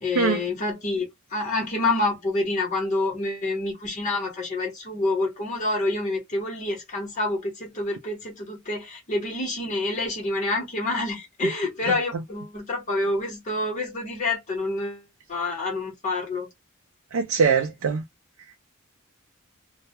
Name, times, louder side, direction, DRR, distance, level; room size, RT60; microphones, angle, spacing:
voice 1, 0.0-15.0 15.3-16.5, left 2 dB, 35° left, 0.9 m, -27 dB
voice 2, 17.1-18.0, right 5 dB, 75° right, 0.4 m, -22 dB
2.2 x 2.1 x 2.8 m
head